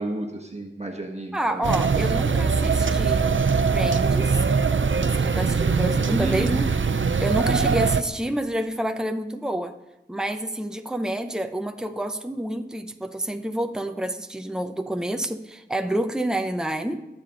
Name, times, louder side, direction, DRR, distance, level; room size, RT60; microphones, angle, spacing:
voice 1, 0.0-1.6 6.2-6.5 7.5-7.7, right 2 dB, 35° right, 1 dB, 1.4 m, -31 dB
voice 2, 1.3-3.3 3.7-4.4 5.0-6.8 7.2-9.7 10.1-17.0, right 1 dB, 5° right, 6 dB, 0.8 m, -28 dB
sound 1, 1.6-8.0, right 5 dB, 85° right, 0.6 m, -22 dB
22.5 x 7.6 x 3.9 m, 0.97 s
wide cardioid pair, 45°, 19 cm